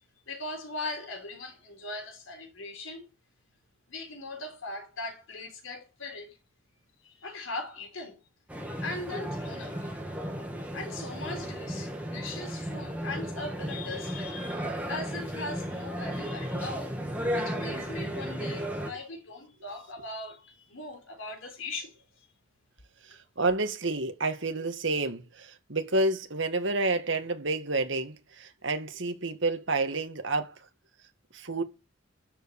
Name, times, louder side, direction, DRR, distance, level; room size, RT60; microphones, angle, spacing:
voice 1, 0.3-3.1 3.9-6.4 7.0-8.2 8.8-9.9 10.7-17.0 17.3-21.9, left 2 dB, 90° left, 3.9 m, -39 dB
sound 1, 8.5-18.9, equal, 5° right, 2.2 m, -34 dB
voice 2, 17.3-18.1 23.0-30.7 31.3-31.6, right 2 dB, 70° right, 1.9 m, -30 dB
12.5 x 5.4 x 6.6 m
head